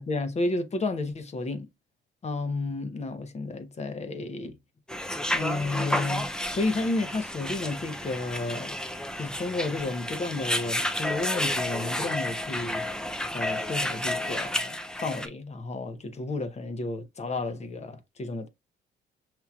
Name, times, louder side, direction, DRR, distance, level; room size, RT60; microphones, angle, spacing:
voice 1, 0.0-1.7 2.2-4.6 5.3-8.8 9.2-12.8 13.3-18.5, left 2 dB, 35° left, 0.8 m, -32 dB
sound 1, 4.9-15.3, left 1 dB, 5° left, 0.4 m, -31 dB
5.8 x 2.7 x 2.3 m
cardioid pair, 90°, 20 cm